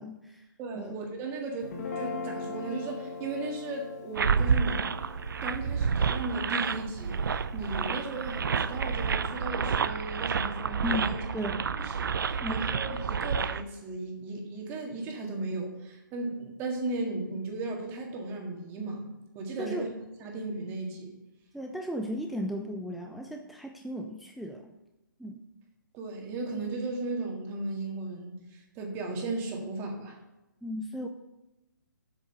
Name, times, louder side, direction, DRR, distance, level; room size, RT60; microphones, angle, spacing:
voice 1, 0.0-0.4 0.7-1.0 10.8-11.6 12.4-12.6 19.6-19.9 21.5-24.7 25.2-25.4 30.6-31.1, equal, ahead, 2 dB, 0.3 m, -35 dB
voice 2, 0.6-4.9 5.4-11.2 11.5-19.9 20.2-21.1 25.9-30.2, right 2 dB, 20° right, 1 dB, 1.8 m, -36 dB
Guitar, 1.6-7.9, left 3 dB, 45° left, 1.5 m, -41 dB
sound 1, 4.2-13.6, right 6 dB, 75° right, 0.5 m, -29 dB
8.1 x 6.3 x 6.7 m, 0.99 s
hypercardioid pair, 150°, 11 cm